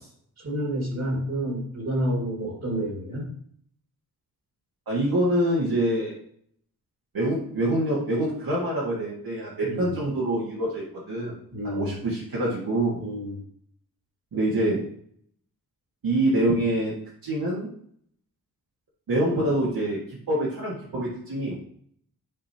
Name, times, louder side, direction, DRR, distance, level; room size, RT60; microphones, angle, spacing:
voice 1, 0.4-3.3 9.6-10.0 11.5-12.0 13.0-13.4, right 1 dB, 45° right, -2 dB, 2.0 m, -29 dB
voice 2, 4.9-6.2 7.1-11.4 11.6-13.0 14.3-14.8 16.0-16.9 17.2-17.7 19.1-21.5, right 1 dB, 65° right, -6 dB, 1.8 m, -25 dB
9.5 x 4.9 x 2.8 m, 0.64 s
wide cardioid pair, 145°, 38 cm